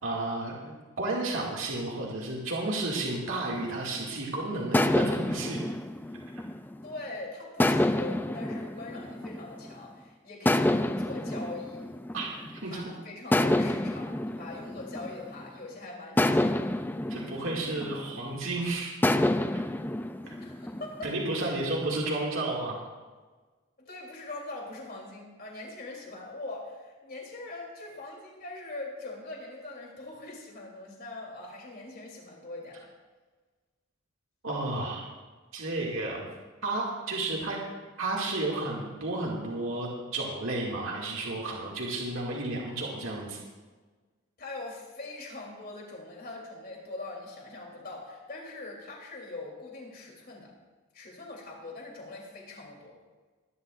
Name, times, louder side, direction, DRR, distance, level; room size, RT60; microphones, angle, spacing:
voice 1, 0.0-5.6 12.1-13.0 17.1-18.9 19.5-19.6 21.0-22.8 34.4-35.1 35.5-36.3 36.6-37.6 38.0-43.4, right 2 dB, 70° right, -3 dB, 2.4 m, -32 dB
sound 1, 3.5-4.1 4.7-7.0 7.6-9.8 10.4-12.7 13.3-15.6 16.2-18.4 19.0-21.3, left 1 dB, 10° left, 0.3 m, -28 dB
voice 2, 6.8-11.9 12.6-16.7 20.2-21.1 21.5-21.7 23.8-32.9 44.4-50.5 50.9-53.0, left 2 dB, 45° left, -2 dB, 3.4 m, -42 dB
22.0 x 11.5 x 2.6 m, 1.3 s
head